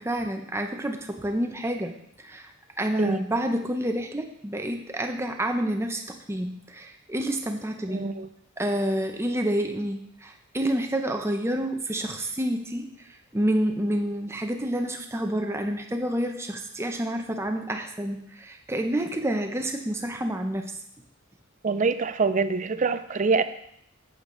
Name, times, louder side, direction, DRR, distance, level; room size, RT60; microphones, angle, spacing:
voice 1, 0.0-2.0 2.2-2.5 2.8-8.1 8.6-12.9 13.3-20.7, right 1 dB, 10° right, 4 dB, 0.8 m, -28 dB
voice 2, 7.9-8.3 21.6-23.4, right 4 dB, 35° right, 11 dB, 0.4 m, -25 dB
8.7 x 8.1 x 3.9 m, 0.72 s
head